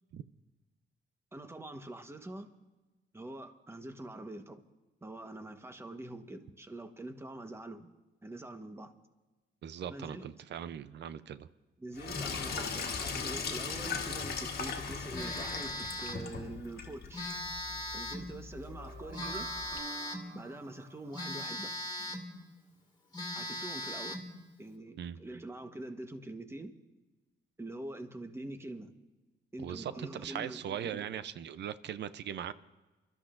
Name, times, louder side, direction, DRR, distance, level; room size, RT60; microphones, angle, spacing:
voice 1, 1.3-2.5 3.1-4.6 5.0-7.9 8.2-8.9 9.9-10.3 11.8-15.7 16.0-17.3 17.9-19.5 20.3-21.7 22.0-22.1 23.3-24.2 24.6-26.7 27.6-28.9 29.5-31.3, right 1 dB, 10° right, 7 dB, 1.2 m, -44 dB
voice 2, 9.6-11.5 25.0-25.2 29.6-32.5, right 9 dB, 60° right, 14 dB, 0.6 m, -40 dB
Sink (filling or washing), 11.9-19.8, left 5 dB, 50° left, 1.6 m, -39 dB
Telephone, 15.1-16.3 17.1-18.3 19.1-20.3 21.1-22.3 22.8-22.9 23.1-24.3, left 1 dB, 20° left, 2.1 m, -39 dB
sound 1, 18.5-21.6, right 5 dB, 80° right, 2.9 m, -48 dB
30.0 x 12.5 x 2.6 m, 1.2 s
cardioid pair, 90°, 20 cm